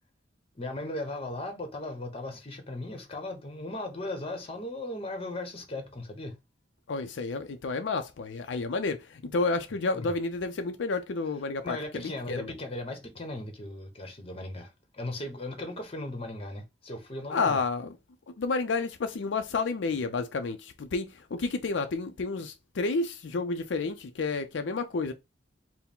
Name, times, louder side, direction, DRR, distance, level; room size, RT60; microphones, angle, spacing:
voice 1, 0.5-6.4 9.9-10.1 11.6-17.6, left 1 dB, 30° left, 1.0 m, -37 dB
voice 2, 6.9-12.5 17.3-18.0 18.4-25.1, left 3 dB, 80° left, 0.5 m, -30 dB
4.6 x 2.1 x 3.6 m
head